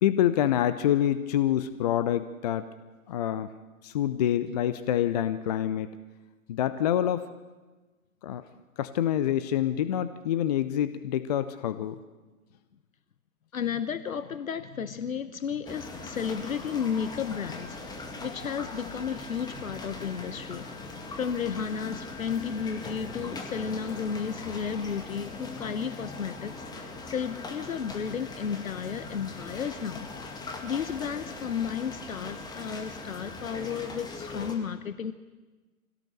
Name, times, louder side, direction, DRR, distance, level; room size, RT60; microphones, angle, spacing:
voice 1, 0.0-2.7 3.1-3.5 3.8-6.0 6.5-7.3 8.2-8.4 8.8-12.0, left 11 dB, 30° left, 13 dB, 0.6 m, -26 dB
voice 2, 13.5-17.9 18.2-20.7 21.1-26.7 27.0-30.1 30.6-35.1, left 7 dB, 65° left, 13 dB, 1.0 m, -33 dB
sound 1, 15.7-34.6, left 3 dB, 10° left, 2.0 m, -40 dB
24.0 x 17.0 x 6.7 m, 1.3 s
figure-of-eight pair, 120°, 43 cm